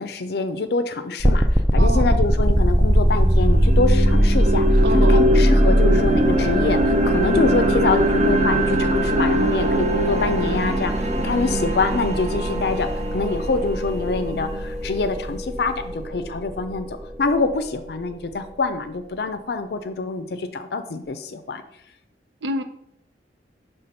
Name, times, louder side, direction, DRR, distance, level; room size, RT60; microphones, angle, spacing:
voice 1, 0.0-21.6, left 3 dB, 65° left, 9 dB, 0.5 m, -25 dB
sound 1, 1.2-18.1, equal, 10° right, 0.3 m, -21 dB
voice 2, 1.8-2.2 4.8-5.2 22.4-22.6, right 1 dB, 90° right, 9 dB, 0.7 m, -27 dB
sound 2, 2.3-2.4 2.9-14.9, right 1 dB, 40° right, 0.7 m, -23 dB
5.8 x 3.5 x 5.4 m, 0.77 s
head